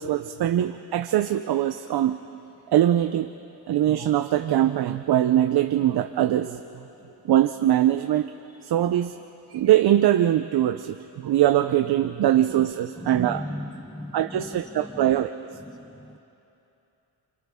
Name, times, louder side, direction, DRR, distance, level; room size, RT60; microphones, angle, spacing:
voice 1, 0.0-2.2 2.7-3.3 3.7-6.6 7.2-8.3 8.6-9.2 9.5-13.4 14.1-15.3, right 12 dB, 70° right, 8 dB, 0.7 m, -22 dB
voice 2, 13.0-15.2 15.7-16.2, left 1 dB, 10° left, 7 dB, 0.7 m, -37 dB
29.5 x 28.0 x 3.6 m, 2.9 s
wide cardioid pair, 160°, 41 cm